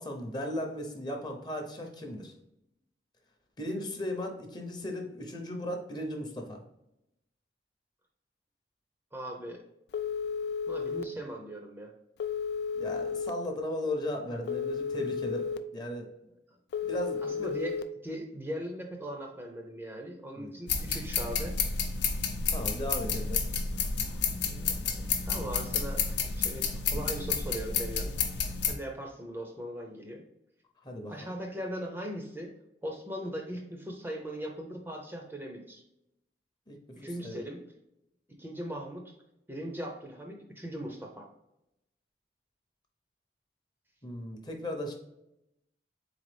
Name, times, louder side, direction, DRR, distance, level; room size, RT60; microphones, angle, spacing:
voice 1, 0.0-2.3 3.6-6.6 12.7-16.1 16.9-17.6 20.4-20.6 22.5-23.4 30.8-31.3 36.7-37.4 44.0-44.9, left 1 dB, 25° left, 3 dB, 0.7 m, -36 dB
voice 2, 9.1-9.6 10.7-11.9 16.8-16.9 17.2-21.6 23.7-23.8 24.4-28.1 28.7-30.2 31.1-32.5 32.8-35.8 37.0-37.7 38.4-39.1 39.5-41.3, right 1 dB, 10° right, 1 dB, 0.5 m, -39 dB
Telephone, 9.9-11.0 12.2-13.3 14.5-15.6 16.7-17.8, left 6 dB, 65° left, 0.3 m, -33 dB
sound 1, 20.7-28.8, left 5 dB, 80° left, 0.7 m, -31 dB
3.9 x 3.8 x 3.3 m, 0.84 s
head